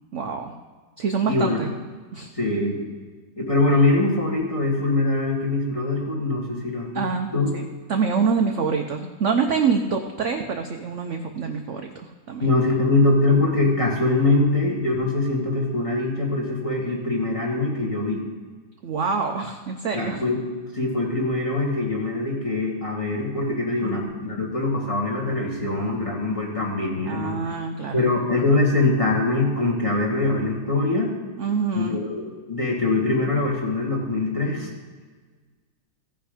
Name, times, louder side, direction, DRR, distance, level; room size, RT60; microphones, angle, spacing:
voice 1, 0.1-0.5 1.0-1.7 2.1-2.3 6.9-12.5 18.8-20.2 23.8-24.1 27.1-28.1 31.4-32.0, right 5 dB, 60° right, 4 dB, 0.8 m, -26 dB
voice 2, 1.3-1.6 2.4-2.8 3.4-7.0 7.3-7.5 12.4-18.2 19.9-20.4 20.7-27.4 27.9-31.1 31.7-34.7, left 2 dB, 20° left, -2 dB, 1.8 m, -23 dB
16.0 x 5.7 x 5.0 m, 1.4 s
omnidirectional pair, 1.9 m